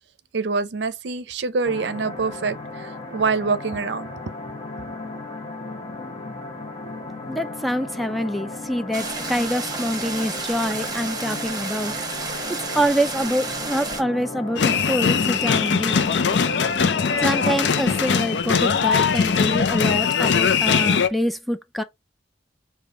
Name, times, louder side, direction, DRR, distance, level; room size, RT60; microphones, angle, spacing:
voice 1, 0.3-4.1, right 4 dB, 70° right, 0.5 m, -25 dB
sound 1, 1.6-18.4, left 2 dB, 30° left, 0.9 m, -35 dB
voice 2, 7.3-11.9 12.5-16.1 17.1-21.8, equal, ahead, 0.3 m, -26 dB
sound 2, 8.9-14.0, right 4 dB, 20° right, 0.9 m, -31 dB
sound 3, 14.6-21.1, left 6 dB, 75° left, 0.5 m, -21 dB
5.1 x 2.3 x 3.7 m
head